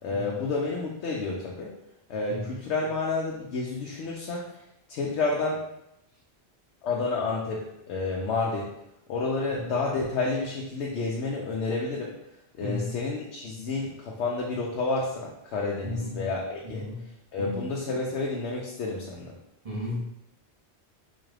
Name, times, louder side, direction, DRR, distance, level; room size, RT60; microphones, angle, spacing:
voice 1, 0.0-1.7 2.1-4.4 4.9-5.6 6.8-8.7 9.1-12.1 12.6-16.8 17.3-19.4, left 3 dB, 85° left, -2 dB, 0.9 m, -30 dB
voice 2, 12.6-13.0 15.8-16.2 16.6-17.0 17.4-17.6 19.6-20.0, left 2 dB, 35° right, -6 dB, 1.1 m, -34 dB
4.3 x 2.4 x 3.2 m, 0.85 s
omnidirectional pair, 1.1 m